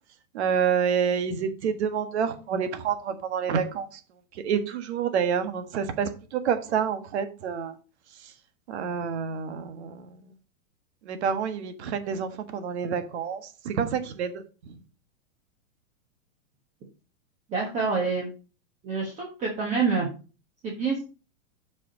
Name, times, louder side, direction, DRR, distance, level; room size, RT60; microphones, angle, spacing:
voice 1, 0.3-3.9 4.4-7.7 8.7-10.1 11.1-13.4 13.6-14.3, right 7 dB, 55° right, 1.5 m, -28 dB
voice 2, 17.5-18.3 18.8-20.1 20.6-21.0, right 4 dB, 15° right, 1.3 m, -27 dB
7.3 x 5.1 x 5.3 m
supercardioid pair, 165°, 41 cm